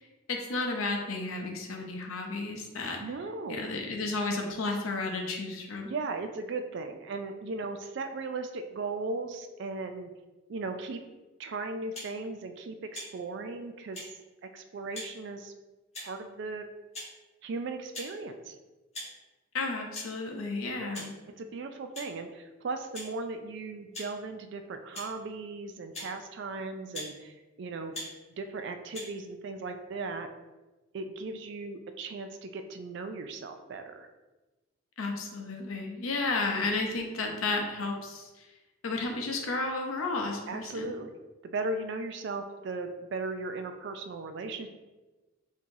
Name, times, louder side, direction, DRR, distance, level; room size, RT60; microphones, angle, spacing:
voice 1, 0.3-3.0 3.5-5.9 19.5-21.2 35.0-38.3 38.8-40.9, left 3 dB, 80° left, 2 dB, 0.6 m, -32 dB
voice 2, 3.0-3.7 5.8-10.1 10.5-11.0 11.4-14.1 14.4-15.5 16.0-16.7 17.4-18.6 20.8-21.1 21.4-28.1 28.4-30.3 30.9-34.1 40.5-41.2 41.4-44.7, right 3 dB, 55° right, 7 dB, 0.3 m, -37 dB
sound 1, 11.9-12.1 12.9-13.1 13.9-14.1 14.9-15.1 15.9-16.2 16.9-17.1 17.9-18.1 18.9-19.1 19.9-20.1 20.9-21.1 21.9-22.1 22.9-23.1 23.9-24.1 24.9-25.1 25.9-26.1 26.9-27.1 27.9-28.1 28.9-29.1, left 1 dB, 30° left, 1.4 m, -40 dB
4.6 x 2.7 x 2.6 m, 1.1 s
head